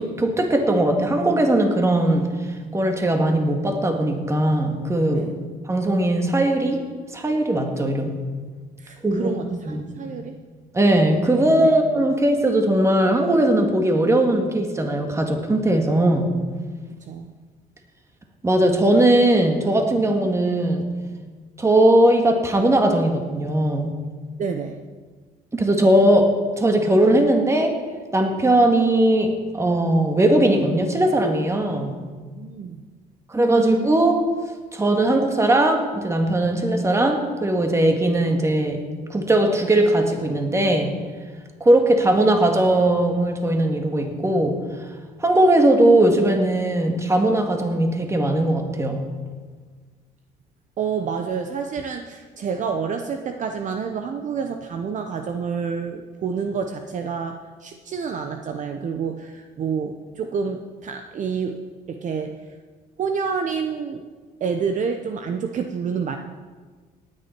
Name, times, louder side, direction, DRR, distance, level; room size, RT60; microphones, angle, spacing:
voice 1, 0.0-2.3 2.7-5.3 5.7-6.8 7.1-8.2 9.0-9.3 9.7-9.8 10.7-16.3 18.4-20.9 21.6-24.0 25.5-27.8 28.1-32.0 33.3-34.3 34.7-41.0 41.6-44.6 45.2-49.1, right 1 dB, 15° right, 3 dB, 1.9 m, -19 dB
voice 2, 8.8-10.4 11.6-11.7 17.0-17.3 24.4-24.8 32.3-32.8 50.8-62.4 63.0-64.0 64.4-66.2, right 6 dB, 45° right, 6 dB, 0.9 m, -28 dB
18.0 x 9.8 x 4.6 m, 1.4 s
cardioid pair, 110°, 17 cm